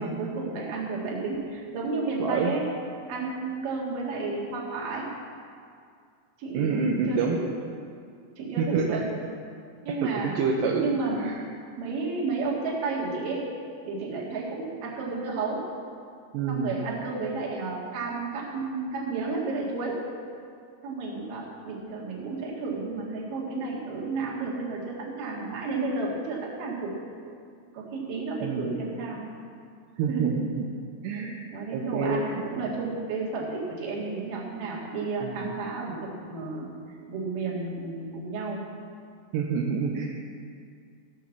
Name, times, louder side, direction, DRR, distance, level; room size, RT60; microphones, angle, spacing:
voice 1, 0.0-2.7 3.1-5.1 6.4-7.5 8.4-9.1 9.8-10.4 10.8-11.3 11.8-13.4 13.9-15.7 16.5-20.0 20.8-26.9 27.7-29.2 30.1-30.3 31.5-36.7 37.1-38.7, right 3 dB, 55° right, -4 dB, 3.3 m, -32 dB
voice 2, 2.2-2.5 6.5-7.4 8.6-8.8 10.0-10.9 11.2-11.3 16.3-16.7 28.4-28.8 30.0-30.7 31.0-31.4 31.7-32.2 35.2-35.3 39.3-40.1, right 5 dB, 80° right, -1 dB, 2.7 m, -27 dB
15.0 x 6.4 x 7.2 m, 2.3 s
omnidirectional pair, 5.3 m